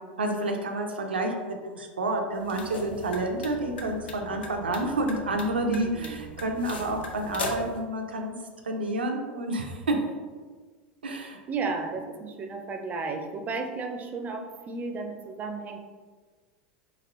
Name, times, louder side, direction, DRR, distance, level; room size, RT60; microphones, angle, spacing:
voice 1, 0.2-8.3 8.6-10.0 11.0-11.4, right 1 dB, 90° right, 3 dB, 0.4 m, -29 dB
sound 1, 2.3-7.8, left 1 dB, 80° left, 0.4 m, -39 dB
voice 2, 5.6-6.2 11.5-15.8, right 4 dB, 30° right, 5 dB, 0.4 m, -33 dB
3.0 x 2.8 x 2.5 m, 1.5 s
hypercardioid pair, 90°, 5 cm